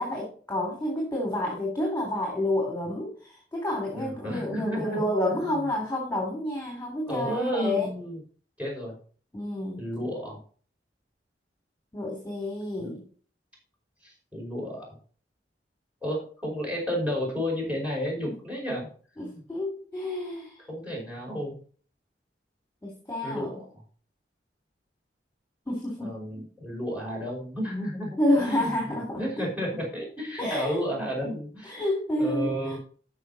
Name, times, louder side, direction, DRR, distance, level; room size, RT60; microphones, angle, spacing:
voice 1, 0.0-3.1 3.5-7.9 9.3-9.8 11.9-13.0 19.2-20.5 22.8-23.5 25.7-26.1 28.2-29.4 30.4-30.8 31.7-32.8, left 1 dB, 15° left, 0 dB, 3.2 m, -29 dB
voice 2, 3.9-5.7 7.1-8.2 8.6-8.9 9.8-10.4 12.8-13.0 14.0-14.8 16.0-18.9 19.2-19.4 20.7-21.6 23.2-23.7 26.0-31.8 32.2-32.8, equal, 10° right, -3 dB, 5.1 m, -32 dB
13.0 x 5.8 x 4.1 m, 0.43 s
head